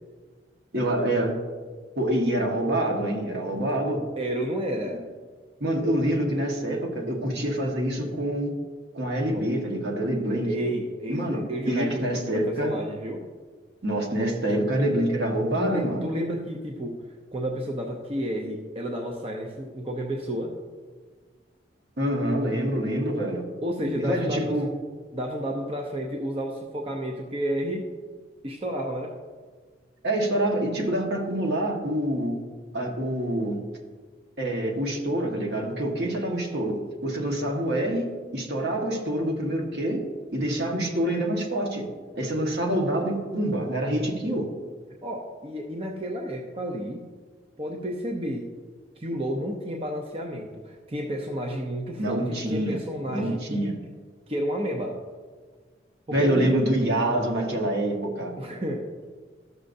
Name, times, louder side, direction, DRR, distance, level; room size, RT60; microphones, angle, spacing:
voice 1, 0.7-1.3 2.0-4.0 5.6-8.5 8.9-10.5 11.1-12.7 13.8-16.1 22.0-23.5 24.0-24.7 30.0-32.4 32.7-33.6 34.4-40.0 40.3-41.9 42.1-44.5 52.0-52.8 53.1-53.7 56.1-58.3, right 1 dB, 65° right, 1 dB, 1.3 m, -26 dB
voice 2, 4.2-5.0 9.3-9.5 10.4-13.2 14.5-14.6 15.5-17.0 17.3-20.5 23.6-24.8 25.1-27.9 28.4-29.1 45.0-47.1 47.6-48.5 49.0-53.7 54.3-55.0 56.1-56.6 58.4-58.8, equal, 30° right, 1 dB, 0.6 m, -31 dB
13.5 x 6.5 x 2.6 m, 1.5 s
head